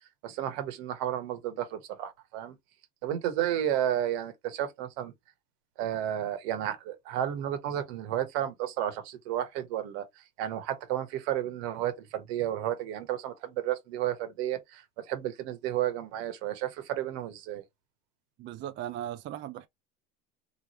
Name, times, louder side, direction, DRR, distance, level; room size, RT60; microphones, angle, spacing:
voice 1, 0.2-2.5 3.0-5.1 5.8-17.6, right 11 dB, 75° right, 1.4 m, -32 dB
voice 2, 18.4-19.7, right 11 dB, 35° right, 0.4 m, -37 dB
3.5 x 3.3 x 2.9 m
supercardioid pair, 115°, 32 cm